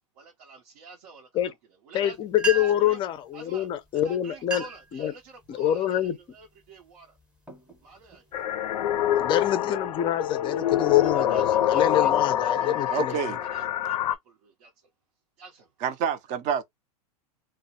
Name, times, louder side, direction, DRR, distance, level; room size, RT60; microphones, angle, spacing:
voice 1, 0.1-1.5 1.8-2.2 2.5-3.0 3.3-3.7 3.9-7.2 7.8-8.2 11.0-14.9 15.4-15.7, right 4 dB, 75° right, 0.7 m, -48 dB
voice 2, 1.9-4.6 4.9-5.1 5.5-6.2 9.2-13.2, left 12 dB, 25° left, 0.4 m, -25 dB
sound 1, 2.1-2.2 2.3-3.0 3.8-4.0 4.3-4.9 5.4-5.8 6.4-6.7 7.2-8.4, right 4 dB, 5° right, 0.7 m, -35 dB
sound 2, 8.3-14.2, left 11 dB, 85° left, 0.4 m, -26 dB
voice 3, 12.9-13.4 15.8-16.6, right 7 dB, 40° right, 0.5 m, -28 dB
2.2 x 2.0 x 2.8 m
hypercardioid pair, 120°, 20 cm